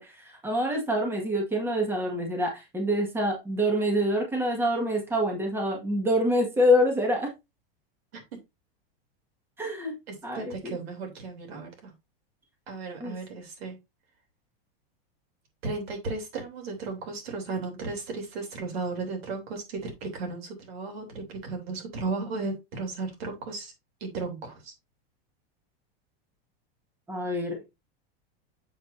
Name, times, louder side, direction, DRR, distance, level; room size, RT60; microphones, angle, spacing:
voice 1, 0.0-7.3 9.6-9.9 10.2-10.8 13.0-13.2 27.1-27.6, equal, 10° right, 1 dB, 1.7 m, -26 dB
voice 2, 10.1-11.9 12.7-13.8 15.6-23.7 24.0-24.7, right 3 dB, 90° right, 3 dB, 3.1 m, -35 dB
7.2 x 6.6 x 2.6 m, 0.23 s
supercardioid pair, 155°, 30 cm